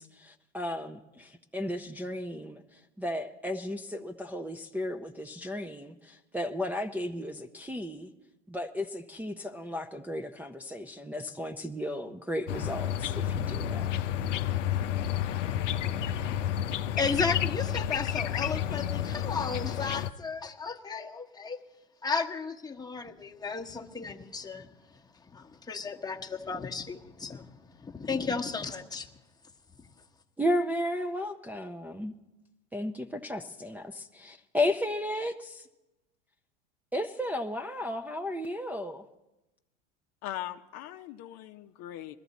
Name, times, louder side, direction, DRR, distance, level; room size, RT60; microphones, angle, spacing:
voice 1, 0.0-8.1 8.5-13.9 30.4-32.1 32.7-35.7 36.9-39.1, left 1 dB, 5° right, 0 dB, 0.6 m, -34 dB
sound 1, 12.5-20.1, left 10 dB, 80° left, 0.6 m, -30 dB
voice 2, 17.0-21.6 22.0-24.7 25.3-27.5 27.8-29.1, left 4 dB, 10° left, 2 dB, 1.1 m, -34 dB
voice 3, 40.2-42.2, left 13 dB, 45° left, 7 dB, 0.7 m, -40 dB
21.0 x 14.0 x 4.1 m, 0.99 s
hypercardioid pair, 85°, 36 cm